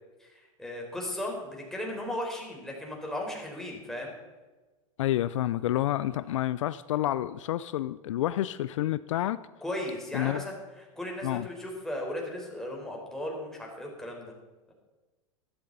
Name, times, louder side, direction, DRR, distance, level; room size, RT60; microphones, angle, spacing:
voice 1, 0.2-4.1 9.6-14.3, left 1 dB, 5° left, -1 dB, 4.0 m, -36 dB
voice 2, 5.0-9.4 10.1-10.4 11.2-11.5, left 13 dB, 65° left, 16 dB, 0.4 m, -29 dB
14.0 x 13.0 x 4.0 m, 1.2 s
hypercardioid pair, 100°, 17 cm